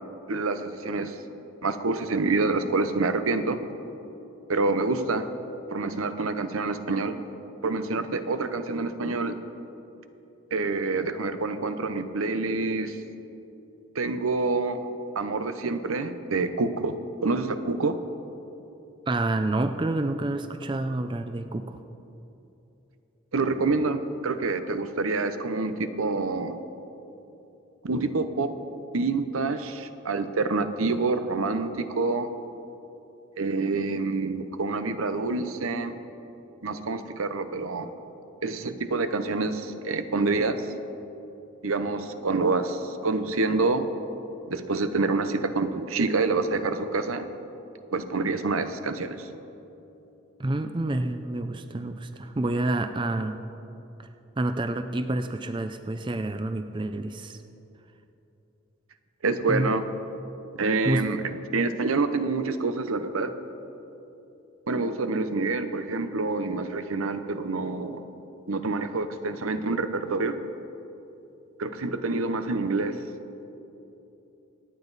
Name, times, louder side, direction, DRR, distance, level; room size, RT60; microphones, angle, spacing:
voice 1, 0.3-1.2 1.6-3.6 4.5-5.3 5.7-7.2 7.6-9.3 10.5-13.0 13.9-14.8 15.1-17.0 17.2-18.0 23.3-26.6 27.8-28.6 28.9-32.3 33.4-35.9 36.6-37.9 38.4-40.6 41.6-43.9 44.5-47.3 47.9-49.3 59.2-59.8 60.6-63.4 64.7-68.0 68.5-70.4 71.6-73.0, right 3 dB, 85° right, 10 dB, 0.8 m, -27 dB
voice 2, 19.1-21.8 50.4-53.4 54.0-54.1 54.4-57.4 59.5-59.7 60.8-61.1, right 2 dB, 25° right, 8 dB, 0.4 m, -28 dB
26.0 x 9.0 x 4.1 m, 3.0 s
head